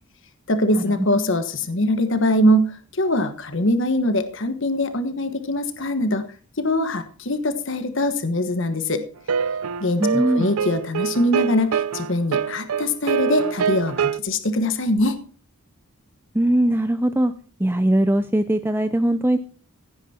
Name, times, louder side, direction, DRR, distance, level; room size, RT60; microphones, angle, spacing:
voice 1, 0.5-6.2 6.6-9.0 9.8-15.2, left 1 dB, 55° left, 9 dB, 1.3 m, -22 dB
sound 1, 9.3-14.2, right 7 dB, 80° right, 0.5 m, -24 dB
voice 2, 10.0-10.5 16.3-17.3 17.6-19.4, right 1 dB, 10° right, 10 dB, 0.5 m, -20 dB
16.0 x 9.2 x 4.3 m, 0.38 s
head